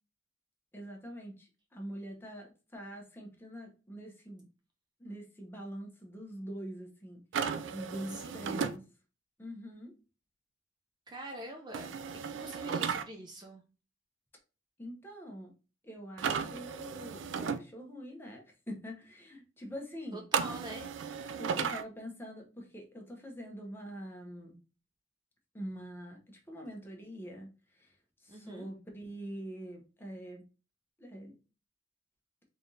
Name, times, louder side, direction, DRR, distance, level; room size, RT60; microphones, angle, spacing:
voice 1, 0.7-4.5 5.0-8.8 9.4-9.9 14.8-15.5 15.8-20.2 21.4-24.6 25.5-27.9 28.2-30.4 31.0-31.3, equal, 10° left, 1 dB, 0.9 m, -44 dB
sound 1, 7.3-8.8 11.7-13.0 16.2-17.6 20.3-21.8, right 6 dB, 85° right, 0.4 m, -34 dB
voice 2, 8.1-8.4 11.1-13.6 20.1-20.9 28.3-28.7, right 1 dB, 25° right, 2 dB, 0.4 m, -45 dB
3.6 x 3.4 x 2.7 m, 0.33 s
head